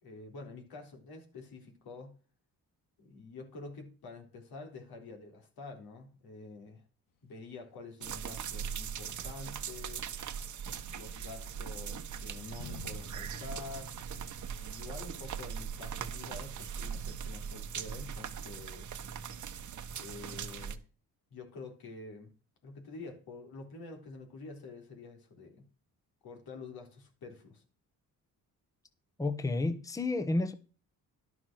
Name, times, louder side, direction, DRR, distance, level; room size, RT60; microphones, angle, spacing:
voice 1, 0.0-2.2 3.0-6.8 7.2-10.1 10.9-14.0 14.6-19.0 20.0-20.8 21.3-22.3 22.6-25.7 26.2-27.6, left 3 dB, 80° left, 3.9 m, -47 dB
sound 1, 8.0-20.8, right 7 dB, 55° right, 1.1 m, -40 dB
sound 2, 9.1-14.5, left 6 dB, 60° left, 1.2 m, -53 dB
voice 2, 29.2-30.5, left 2 dB, 10° left, 0.9 m, -31 dB
11.5 x 6.1 x 6.2 m
cardioid pair, 110°, 36 cm